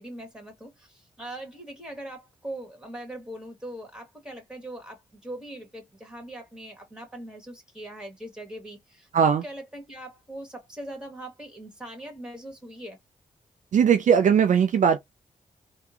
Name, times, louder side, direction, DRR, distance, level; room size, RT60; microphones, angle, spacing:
voice 1, 0.0-13.0, right 1 dB, 5° right, 1.8 m, -41 dB
voice 2, 9.1-9.4 13.7-15.0, right 7 dB, 60° right, 0.4 m, -19 dB
3.5 x 2.2 x 2.8 m
supercardioid pair, 50°, 14 cm